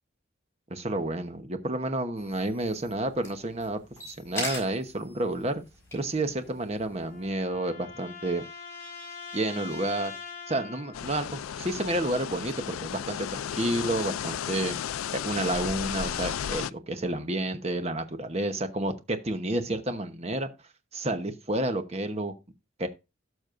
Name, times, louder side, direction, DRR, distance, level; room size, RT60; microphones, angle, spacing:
voice 1, 0.7-3.8 4.0-5.6 5.9-8.4 9.3-10.1 10.5-14.8 15.1-20.5 20.9-22.3 22.8-22.9, right 1 dB, 30° right, 1.0 m, -30 dB
sound 1, 2.2-7.3, left 2 dB, 10° left, 4.6 m, -42 dB
sound 2, 6.5-11.2, left 5 dB, 35° left, 2.1 m, -43 dB
sound 3, 10.9-16.7, left 9 dB, 85° left, 0.4 m, -34 dB
17.0 x 6.3 x 2.5 m
head